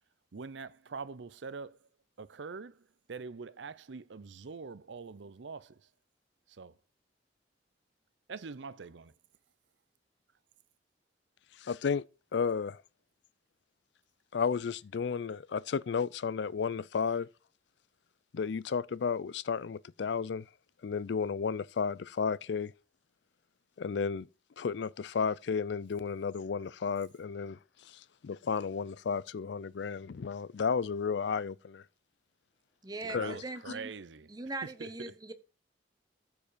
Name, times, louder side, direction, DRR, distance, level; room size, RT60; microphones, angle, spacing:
voice 1, 0.3-1.9 2.2-5.9 6.5-6.7 8.3-9.1 33.0-34.3 34.6-35.1, right 4 dB, 75° right, 0.6 m, -44 dB
voice 2, 11.6-12.0 12.3-12.8 14.3-17.3 18.3-20.4 20.8-22.7 23.8-24.3 24.6-27.6 27.8-31.8 33.1-33.4, left 6 dB, 70° left, 0.4 m, -33 dB
voice 3, 32.8-33.9 34.3-35.3, right 2 dB, 20° right, 0.9 m, -40 dB
13.5 x 4.8 x 5.0 m
head